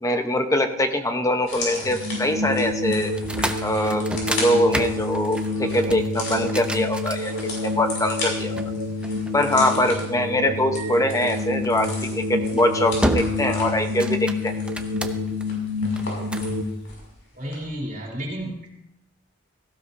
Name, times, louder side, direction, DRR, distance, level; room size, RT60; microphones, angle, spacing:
voice 1, 0.0-3.1 3.6-8.6 9.3-14.5, left 1 dB, 15° left, 6 dB, 1.0 m, -23 dB
sound 1, 1.4-17.1 17.4-17.5, left 2 dB, 65° left, 6.1 m, -37 dB
sound 2, 1.8-16.6, left 2 dB, 55° right, 1.3 m, -28 dB
sound 3, 3.1-7.8 8.6-9.9 11.6-11.9 12.4-12.7 13.0-13.6 13.8-15.4 16.0-16.5, right 1 dB, 5° right, 0.7 m, -30 dB
voice 2, 17.3-18.7, equal, 40° right, -2 dB, 3.1 m, -32 dB
17.5 x 15.5 x 2.8 m, 0.78 s
head